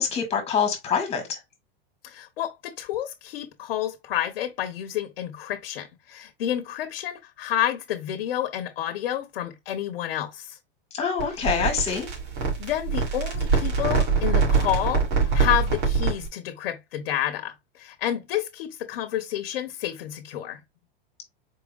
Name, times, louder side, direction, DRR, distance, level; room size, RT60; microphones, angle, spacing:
voice 1, 0.0-1.4 10.9-12.1, left 6 dB, 20° left, 1.9 m, -25 dB
voice 2, 2.0-10.6 12.6-20.6, left 12 dB, 70° left, 1.0 m, -29 dB
sound 1, 11.2-16.3, right 5 dB, 55° right, 2.7 m, -24 dB
4.6 x 3.5 x 2.3 m
supercardioid pair, 135°, 29 cm